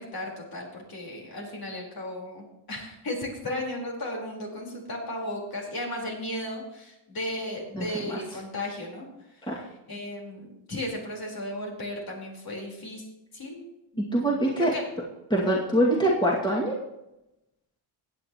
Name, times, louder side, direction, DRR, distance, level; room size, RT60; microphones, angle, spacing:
voice 1, 0.0-13.1 13.3-13.6 13.9-14.9, left 1 dB, 45° left, -1 dB, 4.3 m, -35 dB
voice 2, 7.7-8.2 9.5-9.6 14.0-14.7 15.3-16.7, right 1 dB, 10° left, -3 dB, 2.2 m, -24 dB
17.0 x 9.1 x 3.0 m, 0.92 s
cardioid pair, 110°, 48 cm